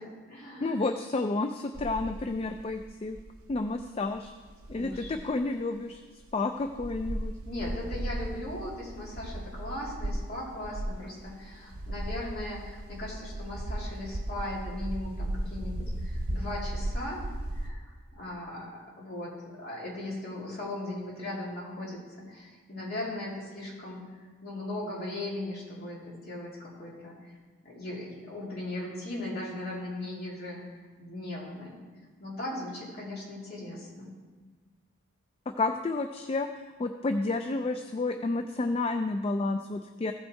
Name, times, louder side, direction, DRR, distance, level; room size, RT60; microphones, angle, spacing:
voice 1, 0.0-0.8 4.7-5.1 7.4-17.2 17.5-27.3 27.6-30.6 31.0-31.8 32.2-34.1, left 1 dB, 45° left, -5 dB, 3.0 m, -38 dB
voice 2, 0.6-3.2 3.5-4.3 4.7-7.3 35.5-40.1, left 3 dB, 25° left, 7 dB, 0.3 m, -31 dB
sound 1, 1.7-5.4 5.9-6.0 6.2-6.3 6.6-17.7, right 1 dB, 80° right, 0.9 m, -36 dB
15.0 x 5.5 x 4.5 m, 1.4 s
head